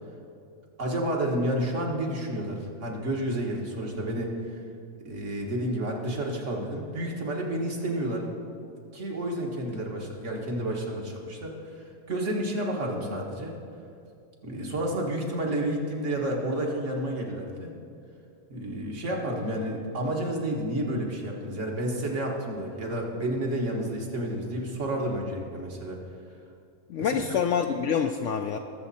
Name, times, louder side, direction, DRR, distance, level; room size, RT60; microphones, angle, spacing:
voice 1, 0.8-4.3 5.1-8.2 8.9-11.6 12.1-13.6 14.4-17.7 18.5-26.0 27.0-27.2, right 1 dB, 55° right, 0 dB, 2.0 m, -30 dB
voice 2, 26.9-28.6, left 7 dB, 70° left, 4 dB, 0.8 m, -26 dB
21.5 x 7.3 x 4.2 m, 2.6 s
omnidirectional pair, 1.5 m